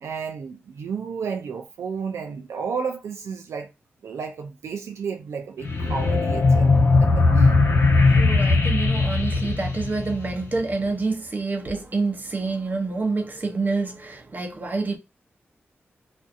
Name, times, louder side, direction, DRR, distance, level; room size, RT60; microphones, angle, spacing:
voice 1, 0.0-3.7 4.0-7.6, right 6 dB, 85° right, 0.4 m, -32 dB
sound 1, 5.6-10.6, left 3 dB, 70° left, 0.7 m, -19 dB
voice 2, 8.1-15.0, right 3 dB, 40° right, 0.8 m, -27 dB
2.5 x 2.3 x 2.5 m
cardioid pair, 65°, 5 cm